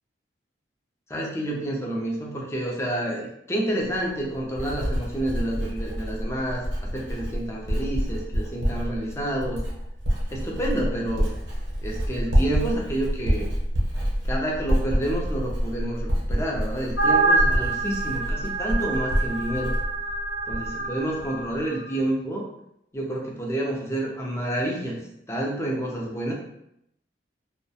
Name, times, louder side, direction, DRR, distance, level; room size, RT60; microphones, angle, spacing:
voice 1, 1.1-9.6 10.3-11.3 11.8-13.5 14.2-19.7 20.5-22.5 22.9-25.0 25.3-26.3, right 1 dB, 15° left, -2 dB, 0.4 m, -29 dB
Writing, 3.8-20.9 21.2-21.6, equal, 75° right, 0.7 m, -27 dB
sound 1, 17.0-21.4, right 3 dB, 65° left, 0.6 m, -26 dB
2.3 x 2.1 x 2.7 m, 0.77 s
head